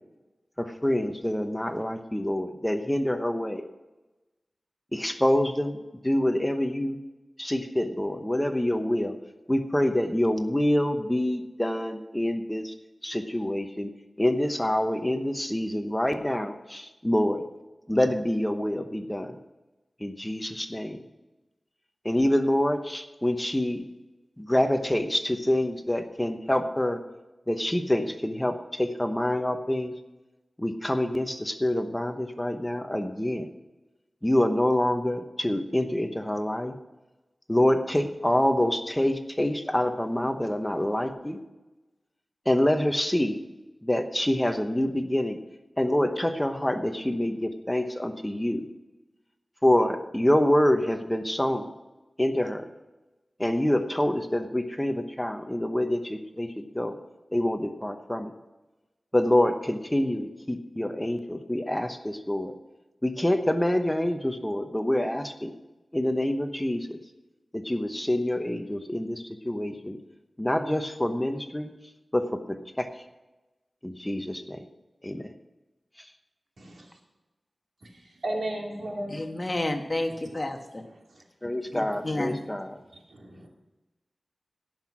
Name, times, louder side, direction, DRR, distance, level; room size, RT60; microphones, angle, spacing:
voice 1, 0.6-3.7 4.9-5.8 6.0-7.0 7.4-9.2 9.5-12.7 13.0-13.9 14.2-17.4 17.9-19.4 20.0-21.0 22.0-23.8 24.4-27.0 27.5-29.9 30.6-33.5 34.2-36.7 37.5-41.4 42.5-43.4 43.8-45.4 45.8-48.6 49.6-51.7 52.2-52.7 53.4-57.0 57.3-58.3 59.1-62.5 63.0-65.5 65.9-67.0 67.5-70.0 70.4-71.7 72.1-72.9 73.8-74.6 75.0-75.3 81.4-82.8, left 1 dB, 10° left, 7 dB, 0.9 m, -26 dB
voice 2, 77.8-79.2 80.4-80.5 80.9-81.2 83.1-83.5, right 1 dB, 80° right, -1 dB, 2.8 m, -35 dB
voice 3, 79.1-80.6 81.7-82.4, left 1 dB, 30° left, 5 dB, 1.3 m, -30 dB
17.0 x 6.0 x 6.0 m, 1.1 s
wide cardioid pair, 70°, 0 cm